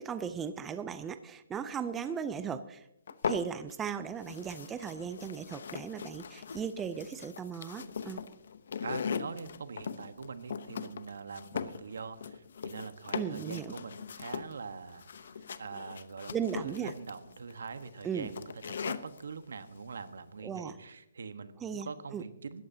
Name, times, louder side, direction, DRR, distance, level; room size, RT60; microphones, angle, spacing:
voice 1, 0.0-2.8 3.2-8.2 13.1-13.7 16.3-16.9 18.0-18.3 20.4-20.8 21.6-22.2, right 7 dB, 10° right, 11 dB, 0.5 m, -37 dB
sound 1, 3.1-3.9 4.2-19.2, left 6 dB, 65° left, 0.9 m, -40 dB
voice 2, 8.8-22.7, right 5 dB, 80° right, 10 dB, 1.2 m, -43 dB
19.0 x 14.0 x 2.8 m, 0.82 s
hypercardioid pair, 160°, 0 cm